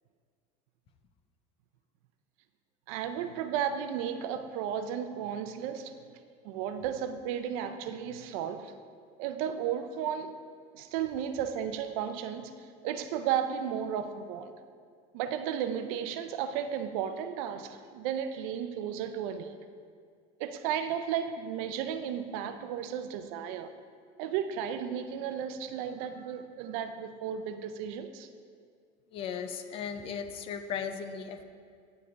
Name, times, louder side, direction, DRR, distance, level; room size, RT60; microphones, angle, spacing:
voice 1, 2.9-5.9 6.4-8.7 9.2-10.4 10.7-14.5 15.1-19.6 20.4-23.7 24.2-28.3, right 8 dB, 70° right, 9 dB, 0.6 m, -34 dB
voice 2, 29.1-31.4, left 7 dB, 30° left, 8 dB, 0.4 m, -36 dB
9.9 x 5.4 x 3.9 m, 2.1 s
cardioid pair, 175°, 18 cm